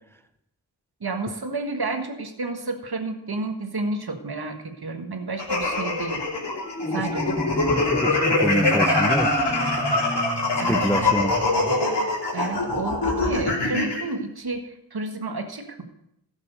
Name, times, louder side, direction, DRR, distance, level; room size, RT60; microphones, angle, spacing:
voice 1, 1.0-6.2 6.9-7.4 10.6-11.1 12.3-15.8, right 3 dB, 55° right, 6 dB, 1.5 m, -31 dB
sound 1, 5.4-14.0, left 2 dB, 65° left, 3.1 m, -23 dB
Marimba xylophone, 6.6-11.7, left 1 dB, 25° left, 2.1 m, -30 dB
voice 2, 7.7-9.3 10.7-11.4, equal, 5° left, 9 dB, 0.6 m, -27 dB
13.0 x 7.3 x 6.5 m, 0.81 s
wide cardioid pair, 65°, 44 cm